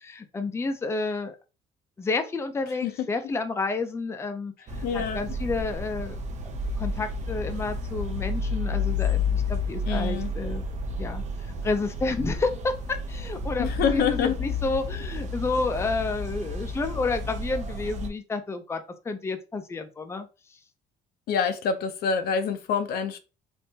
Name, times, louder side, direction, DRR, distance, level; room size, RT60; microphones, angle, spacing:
voice 1, 0.0-1.4 2.0-4.5 4.9-6.2 6.8-10.6 11.0-11.2 11.6-20.3, left 3 dB, 15° left, 0.5 m, -30 dB
sound 1, 4.7-18.1, left 2 dB, 45° right, 0.7 m, -31 dB
voice 2, 4.8-5.4 9.9-10.3 13.6-14.4 21.3-23.2, left 6 dB, 70° left, 0.6 m, -26 dB
3.6 x 2.5 x 2.7 m
cardioid pair, 110°, 17 cm